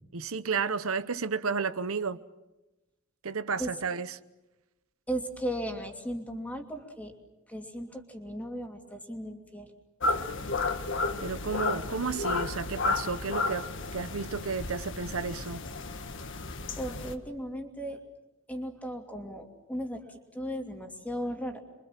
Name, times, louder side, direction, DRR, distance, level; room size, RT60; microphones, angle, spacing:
voice 1, 0.1-2.2 3.2-4.1 11.2-13.6 13.9-15.6, right 5 dB, 75° right, 0.9 m, -32 dB
voice 2, 5.1-7.1 7.5-9.7 16.8-18.0 18.5-21.6, equal, 5° left, 2.8 m, -36 dB
sound 1, 10.0-17.2, left 3 dB, 60° left, 1.6 m, -32 dB
28.0 x 24.0 x 7.5 m
head